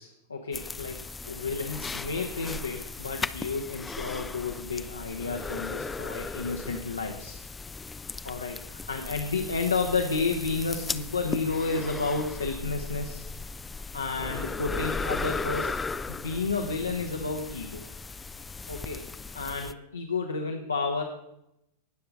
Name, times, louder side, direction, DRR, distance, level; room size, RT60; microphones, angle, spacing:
voice 1, 0.0-7.4 8.2-13.2 13.9-15.8 16.1-17.8 18.7-19.0 19.3-21.0, left 4 dB, 80° left, 2 dB, 1.1 m, -31 dB
sound 1, 0.5-19.7, left 4 dB, 15° left, 0.4 m, -37 dB
19.5 x 6.9 x 4.0 m, 0.84 s
figure-of-eight pair, 90°, 0 cm